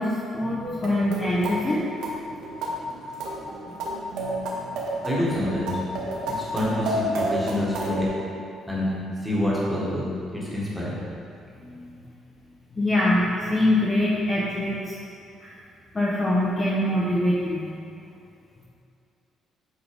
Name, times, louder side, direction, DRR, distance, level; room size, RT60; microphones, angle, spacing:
voice 1, 0.0-1.8 4.2-4.5 6.3-6.4 11.6-12.1 12.7-15.0 15.4-15.5 15.9-17.7, left 1 dB, 15° left, -7 dB, 0.8 m, -24 dB
sound 1, 0.6-8.1, right 1 dB, 80° right, 1.3 m, -30 dB
voice 2, 5.0-5.8 6.3-8.1 8.7-8.9 9.2-11.0, left 1 dB, ahead, -7 dB, 1.4 m, -27 dB
7.9 x 3.9 x 5.1 m, 2.5 s
cardioid pair, 175°, 0 cm